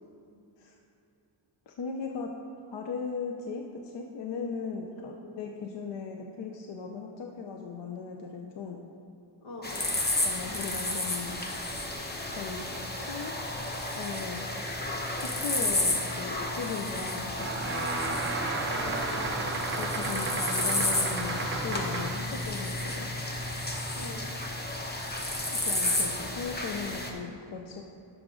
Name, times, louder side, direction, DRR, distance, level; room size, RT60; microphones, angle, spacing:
voice 1, 1.7-2.3 2.7-8.8 10.2-11.3 12.3-12.6 12.9-13.3 13.9-14.5 15.2-17.5 19.8-23.1 25.5-27.8, left 5 dB, 65° left, 2 dB, 0.7 m, -37 dB
voice 2, 4.9-5.3 9.4-9.8 15.6-15.8 18.7-19.5 24.0-24.3, left 2 dB, 90° left, -1 dB, 1.7 m, -42 dB
sound 1, 9.6-27.1, left 1 dB, 20° left, 0.8 m, -32 dB
sound 2, 17.3-22.3, right 3 dB, 25° right, 0.8 m, -33 dB
11.0 x 6.3 x 3.8 m, 2.7 s
wide cardioid pair, 140°, 47 cm